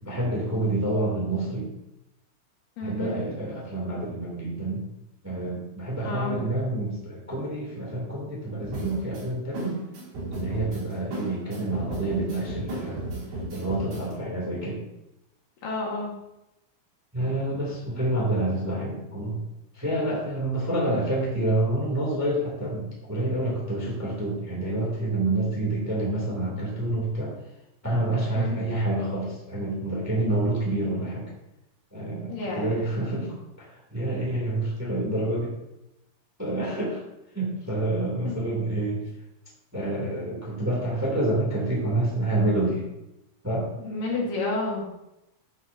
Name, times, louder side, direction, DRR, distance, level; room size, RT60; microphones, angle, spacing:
voice 1, 0.0-1.7 2.8-4.8 5.2-9.8 10.3-13.0 13.5-14.8 17.1-19.4 19.7-27.3 27.8-31.2 31.9-35.5 36.4-37.0 37.3-39.0 39.7-42.8 43.4-43.7, right 1 dB, 5° right, -4 dB, 1.6 m, -28 dB
voice 2, 2.8-3.2 6.0-6.4 15.6-16.1 28.4-28.6 32.3-32.7 38.2-38.4 43.8-45.0, left 2 dB, 65° left, -3 dB, 3.1 m, -30 dB
sound 1, 8.6-14.1, right 2 dB, 70° right, 4.6 m, -35 dB
13.0 x 6.4 x 2.7 m, 0.91 s
omnidirectional pair, 4.5 m